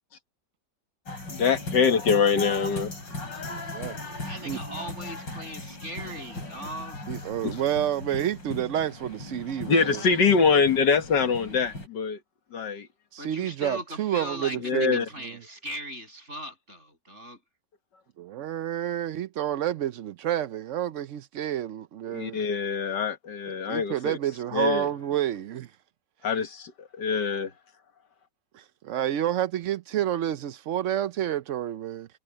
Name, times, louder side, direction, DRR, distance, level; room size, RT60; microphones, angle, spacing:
sound 1, 1.1-11.9, left 2 dB, 90° left, 7.6 m, -38 dB
voice 1, 1.3-2.9 7.4-7.6 9.7-12.2 12.5-12.9 14.6-15.1 22.1-24.2 24.5-24.9 26.2-26.7 27.0-27.5, left 5 dB, 75° left, 2.1 m, -24 dB
voice 2, 3.4-4.6 7.1-10.0 13.1-15.4 18.2-22.4 23.7-25.7 28.5-32.1, right 11 dB, 65° right, 0.7 m, -29 dB
voice 3, 4.2-7.0 13.2-17.4, equal, 40° right, 7.9 m, -39 dB
omnidirectional pair, 1.9 m